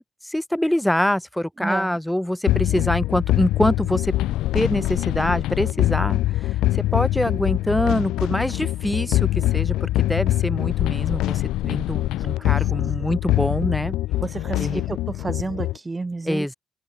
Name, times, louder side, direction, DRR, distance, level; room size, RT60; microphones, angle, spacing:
voice 1, 0.2-4.2 4.5-13.9 14.5-14.8 16.2-16.5, left 1 dB, 5° left, 3.0 m, -25 dB
voice 2, 1.6-2.0 14.2-15.0 15.2-16.5, right 3 dB, 20° right, 1.6 m, -30 dB
sound 1, 2.5-15.8, left 15 dB, 90° left, 1.0 m, -23 dB
open air
cardioid pair, 90°, 0 cm